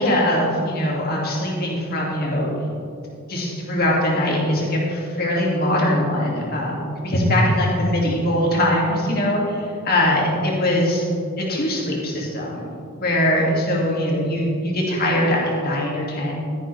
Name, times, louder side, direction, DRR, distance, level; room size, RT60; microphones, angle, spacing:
voice 1, 0.0-2.5 3.3-11.0 11.4-12.7 13.0-16.3, left 1 dB, 45° left, -3 dB, 2.4 m, -21 dB
13.0 x 10.5 x 3.4 m, 2.6 s
head